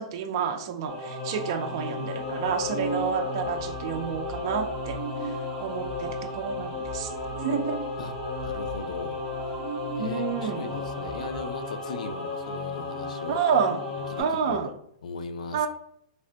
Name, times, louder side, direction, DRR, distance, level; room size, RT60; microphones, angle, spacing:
voice 1, 0.0-7.8 10.0-10.7 13.3-13.8 14.2-14.7 15.5-15.7, right 6 dB, 30° right, 4 dB, 0.4 m, -29 dB
Singing / Musical instrument, 0.9-14.2, left 3 dB, 35° left, 1.4 m, -34 dB
sound 1, 2.2-10.1 10.4-10.5 10.7-11.5, right 5 dB, ahead, 1.1 m, -39 dB
voice 2, 8.4-9.2 10.0-13.4 14.1-14.7 15.0-15.7, left 4 dB, 80° left, 9 dB, 0.4 m, -38 dB
3.3 x 2.1 x 3.8 m, 0.69 s
hypercardioid pair, 180°, 4 cm